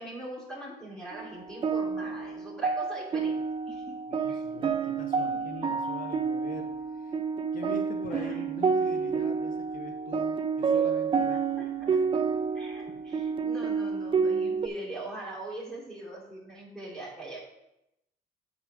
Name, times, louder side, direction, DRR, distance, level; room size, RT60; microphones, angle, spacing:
voice 1, 0.0-3.9 4.3-4.6 5.2-5.4 8.1-8.7 11.3-12.0 12.5-17.4, right 1 dB, 5° left, -4 dB, 3.1 m, -42 dB
sound 1, 1.1-14.7, right 5 dB, 30° right, 0.5 m, -29 dB
voice 2, 4.1-7.2 7.5-12.0, left 4 dB, 55° left, 5 dB, 1.2 m, -43 dB
8.9 x 4.7 x 4.9 m, 0.86 s
cardioid pair, 110°, 17 cm